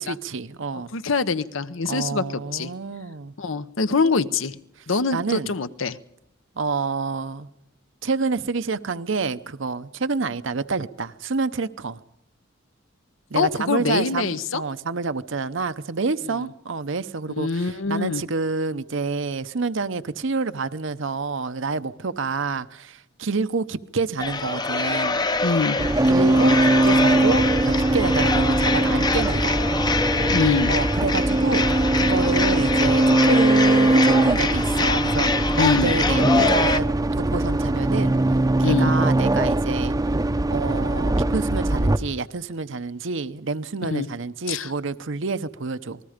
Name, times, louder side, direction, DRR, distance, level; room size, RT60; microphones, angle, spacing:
voice 1, 0.1-0.9 1.8-3.3 5.1-5.5 6.6-7.5 8.0-12.0 13.3-25.2 26.1-29.6 30.7-35.3 35.6-36.8 37.2-38.2 38.6-39.9 40.5-46.0, right 4 dB, 70° right, 0.9 m, -28 dB
voice 2, 0.7-2.7 3.4-4.6 4.9-6.0 13.3-14.6 16.3-16.5 17.4-18.2 25.4-25.8 30.3-30.7 35.6-35.9 38.6-38.9 43.8-44.1 44.5-44.7, left 4 dB, 75° left, 0.9 m, -24 dB
sound 1, 24.2-36.8, left 3 dB, 20° left, 0.7 m, -25 dB
sound 2, 25.8-42.0, right 2 dB, 20° right, 0.7 m, -21 dB
27.5 x 20.0 x 5.1 m
head